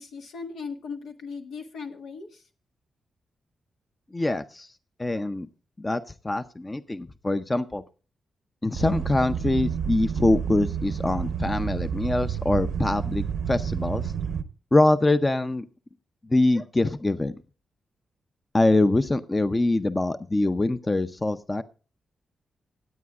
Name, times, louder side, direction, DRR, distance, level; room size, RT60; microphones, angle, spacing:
voice 1, 0.0-2.4, left 5 dB, 85° left, 4 dB, 1.6 m, -38 dB
voice 2, 4.1-4.7 5.0-5.5 5.8-7.8 8.6-14.1 14.7-15.7 16.2-17.3 18.5-21.6, left 2 dB, 25° left, 11 dB, 0.6 m, -24 dB
sound 1, 8.7-14.4, right 7 dB, 85° right, 0.7 m, -29 dB
25.5 x 8.5 x 2.4 m, 0.35 s
cardioid pair, 65°, 0 cm